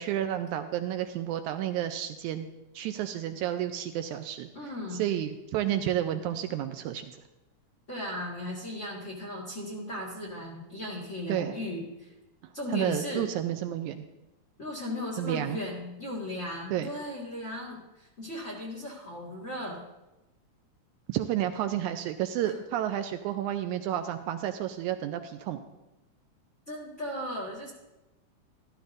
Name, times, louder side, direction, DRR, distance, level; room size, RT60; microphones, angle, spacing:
voice 1, 0.0-2.5 2.8-4.5 4.9-7.2 11.3-11.6 12.7-14.1 15.2-15.6 16.7-16.9 21.1-25.6, right 11 dB, 80° right, 8 dB, 1.8 m, -31 dB
voice 2, 4.5-5.0 7.9-12.1 12.5-13.2 14.6-19.8 22.4-22.5 26.7-27.7, left 1 dB, 30° left, -3 dB, 1.6 m, -36 dB
13.5 x 13.0 x 2.6 m, 1.0 s
omnidirectional pair, 3.6 m